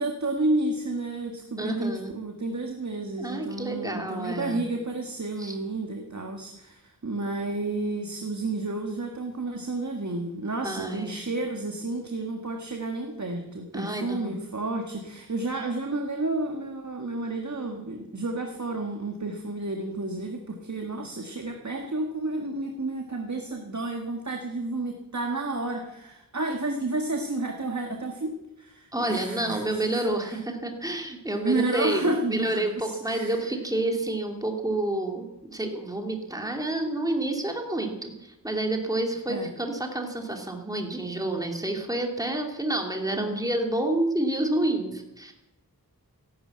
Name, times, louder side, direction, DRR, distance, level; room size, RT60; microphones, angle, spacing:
voice 1, 0.0-30.4 31.4-33.4 39.3-39.5 43.1-43.5, right 2 dB, 50° right, 2 dB, 1.8 m, -31 dB
voice 2, 1.6-2.2 3.2-4.6 5.4-5.6 10.6-11.2 13.7-14.4 28.9-45.3, right 1 dB, 10° right, 3 dB, 2.6 m, -29 dB
15.0 x 11.5 x 7.8 m, 0.92 s
wide cardioid pair, 45°, 35 cm